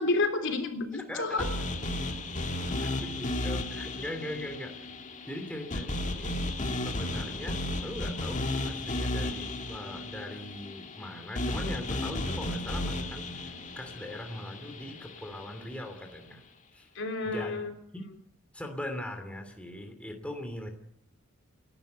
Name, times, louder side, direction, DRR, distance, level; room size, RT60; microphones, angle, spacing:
voice 1, 0.0-1.5 16.9-17.7, left 3 dB, 60° left, 5 dB, 3.3 m, -30 dB
voice 2, 0.9-1.5 2.8-4.7 5.3-6.4 6.8-16.4 16.7-16.9 17.2-17.6 17.9-18.0 18.5-20.7, left 1 dB, 5° left, 4 dB, 2.8 m, -40 dB
sound 1, 1.4-15.5, left 1 dB, 35° left, 1.8 m, -34 dB
29.0 x 12.0 x 8.0 m, 0.75 s
head